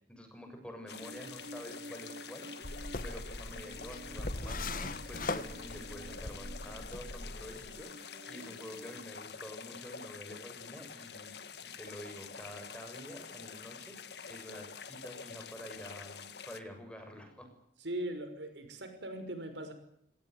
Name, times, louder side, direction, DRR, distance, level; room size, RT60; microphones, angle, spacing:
voice 1, 0.0-2.8 3.0-11.3 11.6-17.5, equal, 5° left, 4 dB, 6.9 m, -48 dB
sound 1, 0.9-16.6, left 6 dB, 65° left, 1.8 m, -47 dB
Human voice, 1.0-9.0, right 1 dB, 50° right, 1.1 m, -51 dB
sound 2, 2.6-7.7, left 2 dB, 50° left, 1.6 m, -40 dB
voice 2, 17.8-19.7, right 1 dB, 80° right, 8 dB, 5.9 m, -39 dB
26.0 x 18.0 x 9.6 m, 0.70 s
head